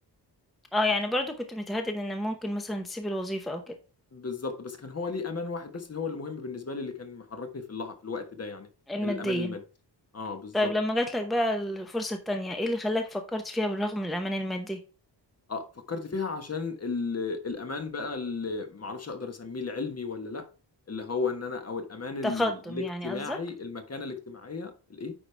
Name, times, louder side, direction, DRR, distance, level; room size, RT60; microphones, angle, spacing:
voice 1, 0.7-3.7 8.9-9.5 10.5-14.8 22.2-23.4, left 1 dB, ahead, 0.8 m, -29 dB
voice 2, 4.1-8.7 9.0-9.6 10.1-10.7 15.5-20.4 20.9-25.1, left 4 dB, 35° left, 1.3 m, -34 dB
9.4 x 4.8 x 3.3 m
wide cardioid pair, 135°, 43 cm